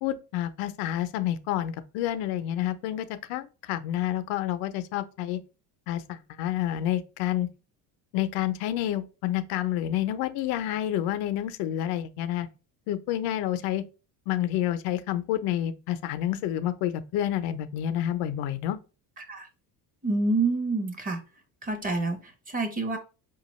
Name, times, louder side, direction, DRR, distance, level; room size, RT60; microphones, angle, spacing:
voice 1, 0.0-5.4 5.9-7.5 8.1-12.5 12.9-13.8 14.3-18.8, left 12 dB, 80° left, 0.5 m, -29 dB
voice 2, 19.2-19.5 20.0-21.2 21.6-23.0, right 3 dB, 20° right, 0.6 m, -28 dB
4.6 x 2.3 x 3.0 m
cardioid pair, 145°, 38 cm